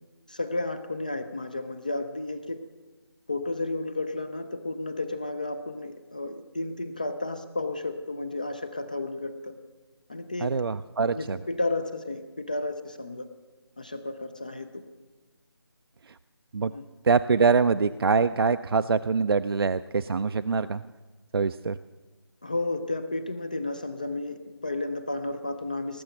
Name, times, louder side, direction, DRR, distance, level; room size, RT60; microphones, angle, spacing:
voice 1, 0.3-2.6 3.3-9.5 10.1-10.5 11.1-13.3 13.8-14.8 16.7-16.9 22.4-26.0, left 2 dB, 20° left, 10 dB, 0.3 m, -32 dB
voice 2, 10.4-11.4 16.5-16.7 17.0-20.8 21.3-21.8, right 5 dB, 65° right, 11 dB, 0.4 m, -24 dB
18.5 x 7.0 x 7.6 m, 1.3 s
figure-of-eight pair, 160°, 14 cm